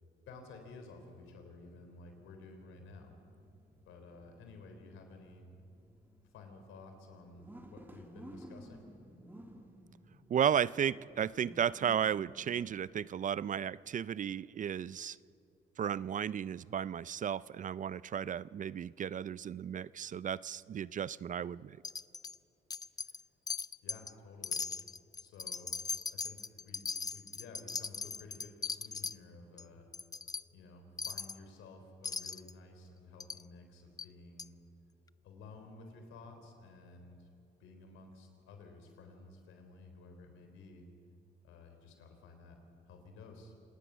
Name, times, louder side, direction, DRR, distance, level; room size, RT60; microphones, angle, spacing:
voice 1, 0.3-3.2 3.8-5.5 6.2-8.9 23.0-23.2 23.8-24.6 25.2-25.7 26.1-29.9 30.5-34.6 35.2-37.3 37.6-40.9 41.4-42.6 42.8-43.5, left 3 dB, 90° left, 5 dB, 3.6 m, -53 dB
sound 1, 1.7-14.9, right 1 dB, 10° right, 2.4 m, -56 dB
voice 2, 10.3-15.2 15.8-21.8, right 8 dB, 40° right, 20 dB, 0.4 m, -34 dB
Wind chime, 21.8-22.4 22.7-23.2 23.5-24.1 24.4-29.2 29.6-29.7 29.9-30.4 31.0-31.4 32.0-32.5 33.2-33.4 34.0-34.1 34.4-34.5, left 4 dB, 20° left, 0.4 m, -39 dB
27.0 x 19.0 x 6.3 m, 2.6 s
cardioid pair, 90°, 20 cm